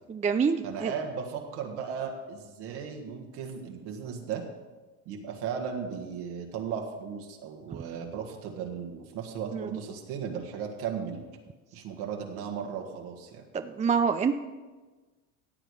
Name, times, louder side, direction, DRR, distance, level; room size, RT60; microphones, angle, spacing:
voice 1, 0.1-0.9 9.5-9.6 13.8-14.3, right 6 dB, 20° right, 8 dB, 0.5 m, -25 dB
voice 2, 0.6-4.4 5.1-11.3 11.7-13.4, right 7 dB, 70° right, 1 dB, 2.0 m, -36 dB
15.0 x 8.1 x 4.9 m, 1.3 s
supercardioid pair, 90°, 40 cm